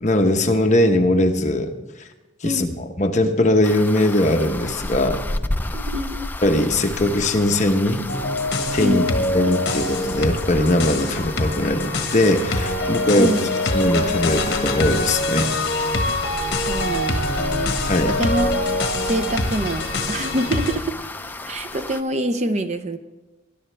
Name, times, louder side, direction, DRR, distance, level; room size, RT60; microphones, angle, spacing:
voice 1, 0.0-1.7 2.4-5.2 6.4-8.1 8.7-9.0 9.3-13.4 13.7-15.5 17.9-18.2, left 1 dB, 40° left, 5 dB, 0.9 m, -20 dB
voice 2, 2.4-2.8 5.7-6.3 8.8-9.1 13.2-13.5 16.7-17.8 18.1-18.5 19.1-21.1 21.5-23.0, right 1 dB, 35° right, 9 dB, 0.6 m, -25 dB
sound 1, 3.6-22.0, left 2 dB, 10° left, 0.4 m, -32 dB
sound 2, 8.1-20.8, left 2 dB, 55° left, 1.5 m, -24 dB
20.5 x 11.0 x 3.4 m, 1.1 s
head